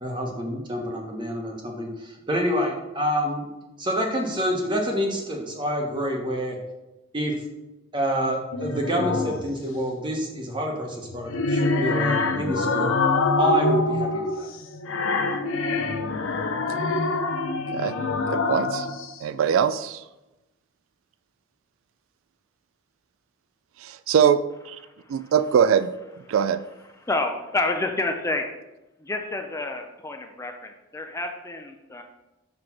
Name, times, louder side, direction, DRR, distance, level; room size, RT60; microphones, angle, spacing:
voice 1, 0.0-3.5 3.8-6.6 7.1-7.3 7.9-12.9 13.4-14.5, equal, 25° right, 1 dB, 1.0 m, -27 dB
sound 1, 8.5-9.5 11.0-19.1, left 3 dB, 80° left, 0.6 m, -25 dB
voice 2, 18.3-18.9 19.2-20.0 23.8-24.4 24.7-24.8 25.1-25.9 26.3-26.6, right 8 dB, 85° right, 13 dB, 0.3 m, -22 dB
voice 3, 24.8-25.3 27.0-28.4 29.0-32.0, left 2 dB, 15° left, 4 dB, 0.4 m, -29 dB
6.0 x 3.2 x 5.8 m, 0.99 s
head